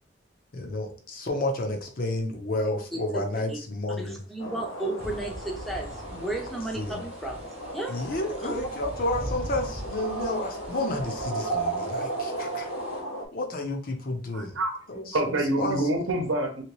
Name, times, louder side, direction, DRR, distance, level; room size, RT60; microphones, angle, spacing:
voice 1, 0.5-4.2 6.8-7.0 7.9-12.7 13.3-14.6 14.9-15.0 15.6-15.8, left 2 dB, 45° left, 0.6 m, -30 dB
voice 2, 2.9-3.6 4.0-7.4 7.7-8.0 8.4-8.8, right 2 dB, ahead, 0.6 m, -34 dB
sound 1, 4.4-13.3, right 2 dB, 90° left, 0.7 m, -35 dB
sound 2, 5.0-13.0, right 1 dB, 30° right, 0.7 m, -41 dB
voice 3, 14.3-14.8 15.1-16.6, right 1 dB, 75° right, 0.8 m, -26 dB
3.0 x 2.8 x 3.0 m
head